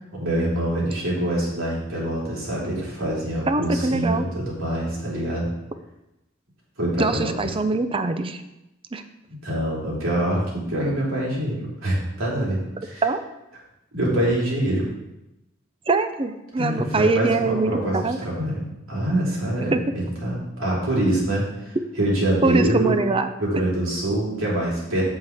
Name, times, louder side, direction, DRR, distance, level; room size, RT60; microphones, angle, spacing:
voice 1, 0.1-5.5 6.8-7.3 9.3-13.0 13.9-14.9 16.6-18.6 18.9-23.0 23.4-25.0, right 1 dB, 75° right, -5 dB, 3.2 m, -25 dB
voice 2, 3.5-4.3 7.0-8.4 8.9-9.0 13.0-13.2 15.9-18.2 19.7-19.8 22.4-23.3, right 3 dB, 25° right, 9 dB, 0.5 m, -23 dB
7.9 x 7.4 x 3.6 m, 0.92 s
head